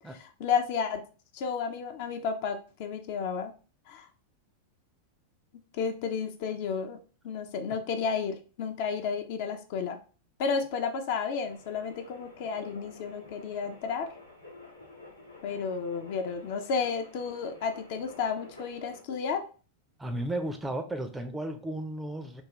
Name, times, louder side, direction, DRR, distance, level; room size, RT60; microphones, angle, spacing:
voice 1, 0.1-1.0 1.3-3.5 3.9-4.1 5.7-7.0 7.2-10.0 10.4-14.1 15.4-19.4, left 6 dB, 50° left, 5 dB, 0.5 m, -32 dB
sound 1, 11.5-19.0, left 2 dB, 85° left, 0.9 m, -51 dB
voice 2, 20.0-22.4, right 1 dB, 10° right, 6 dB, 0.5 m, -34 dB
3.5 x 2.3 x 3.0 m, 0.37 s
figure-of-eight pair, 90°, 0 cm